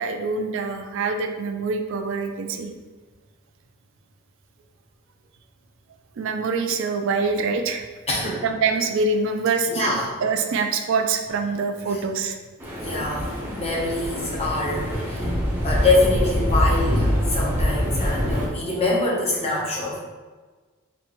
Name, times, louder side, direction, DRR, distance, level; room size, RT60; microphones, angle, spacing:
voice 1, 0.0-2.7 6.2-7.9 8.4-12.4, right 4 dB, 60° right, 5 dB, 0.3 m, -25 dB
voice 2, 8.1-8.4 9.7-10.1 11.9-12.0 12.8-13.3 13.5-15.2 15.6-20.0, left 2 dB, 30° left, -4 dB, 0.8 m, -24 dB
sound 1, 12.6-18.5, equal, 10° right, 0.6 m, -24 dB
4.2 x 2.5 x 3.0 m, 1.4 s
head